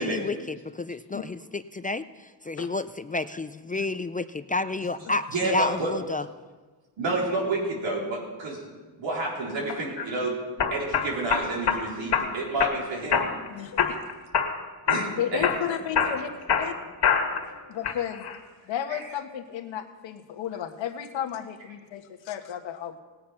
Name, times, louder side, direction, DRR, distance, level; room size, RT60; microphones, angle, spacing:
voice 1, 0.0-6.2, left 2 dB, 20° left, 12 dB, 0.3 m, -30 dB
voice 2, 5.3-5.9 7.0-8.6 9.0-10.3 10.7-13.3 14.9-15.5 18.9-19.0, right 2 dB, 85° right, -3 dB, 4.1 m, -29 dB
sound 1, 9.7-10.1 10.6-11.8 12.1-12.8 13.1-13.5 13.8-14.6 14.9-15.1 15.4-17.5 17.8-18.4, left 7 dB, 65° left, 1.8 m, -25 dB
voice 3, 13.5-14.0 15.2-16.3 16.6-16.7 17.7-18.3 18.7-23.0, left 9 dB, 85° left, 6 dB, 1.3 m, -33 dB
18.0 x 9.6 x 5.7 m, 1.4 s
cardioid pair, 95°, 44 cm